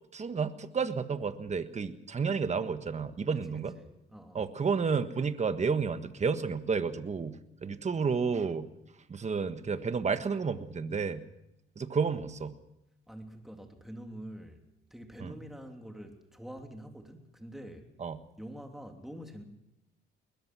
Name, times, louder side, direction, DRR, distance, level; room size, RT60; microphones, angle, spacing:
voice 1, 0.1-3.7 4.3-8.7 9.1-11.2 11.8-12.5 15.2-15.4 18.0-18.2, right 5 dB, 35° right, 10 dB, 1.5 m, -31 dB
voice 2, 3.3-4.4 13.1-14.6 14.9-17.9 18.4-19.4, equal, ahead, 3 dB, 3.2 m, -46 dB
21.0 x 21.0 x 6.2 m, 0.87 s
cardioid pair, 90°, 20 cm